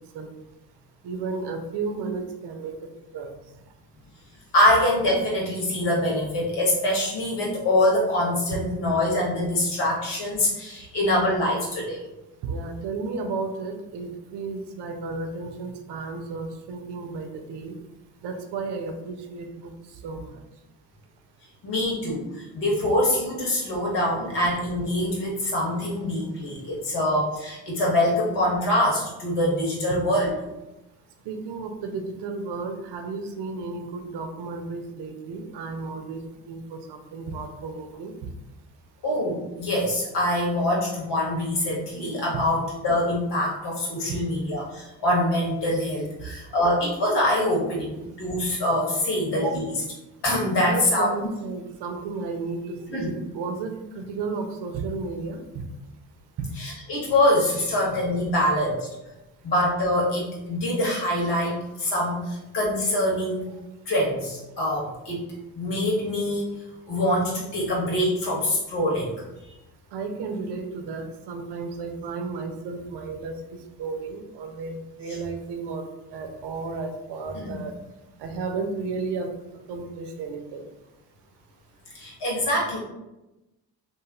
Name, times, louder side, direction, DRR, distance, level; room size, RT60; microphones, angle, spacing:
voice 1, 1.0-3.4 8.5-8.6 12.4-17.7 18.2-19.7 20.0-20.4 31.3-38.1 42.3-42.4 44.1-44.2 50.7-55.6 56.4-56.5 69.9-77.8 78.2-79.3 79.7-80.7, right 4 dB, 55° right, 5 dB, 0.6 m, -33 dB
voice 2, 4.5-12.0 21.6-30.3 39.0-49.8 50.2-51.3 52.9-53.1 56.6-58.9 59.4-63.5 63.9-65.3 65.5-66.5 66.9-69.1 69.4-69.5 77.3-77.5 81.9-82.8, left 1 dB, 55° left, -3 dB, 1.4 m, -24 dB
2.8 x 2.6 x 2.4 m, 0.97 s
hypercardioid pair, 55°, 49 cm